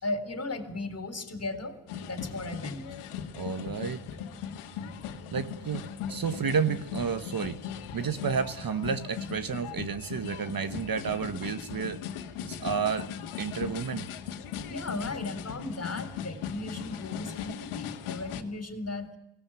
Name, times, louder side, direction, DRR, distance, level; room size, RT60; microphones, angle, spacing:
voice 1, 0.0-2.8 14.7-19.1, left 2 dB, 30° left, 10 dB, 4.1 m, -36 dB
sound 1, 1.9-18.4, left 8 dB, 90° left, 2.2 m, -38 dB
voice 2, 3.3-4.0 5.3-7.6 7.9-12.0 12.5-13.1 13.4-14.1, right 6 dB, 45° right, 12 dB, 1.5 m, -31 dB
22.5 x 18.0 x 9.0 m, 0.83 s
cardioid pair, 75°, 48 cm